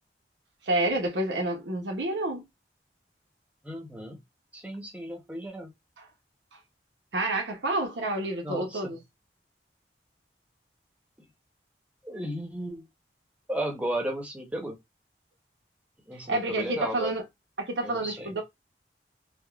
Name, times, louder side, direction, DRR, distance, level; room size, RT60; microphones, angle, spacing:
voice 1, 0.6-2.5 6.0-6.1 6.5-6.6 7.1-9.0 16.3-17.2 17.6-18.4, right 2 dB, 90° right, 0.7 m, -29 dB
voice 2, 3.6-4.2 4.5-5.7 8.4-8.9 12.0-12.8 13.5-14.8 16.1-17.1 17.8-18.3, right 1 dB, 10° right, 0.6 m, -34 dB
3.4 x 2.1 x 2.2 m
head